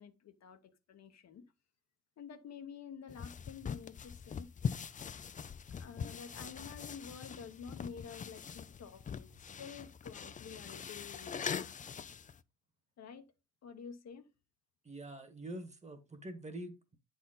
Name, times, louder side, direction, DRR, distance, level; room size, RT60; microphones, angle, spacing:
voice 1, 0.0-1.4 2.2-4.5 5.8-11.5 13.0-13.3 13.6-14.3, left 6 dB, 60° left, 1.0 m, -50 dB
sound 1, 3.1-12.4, left 6 dB, 25° left, 0.4 m, -42 dB
voice 2, 14.8-17.0, right 1 dB, 25° right, 1.5 m, -45 dB
9.0 x 4.3 x 3.9 m
cardioid pair, 90°, 30 cm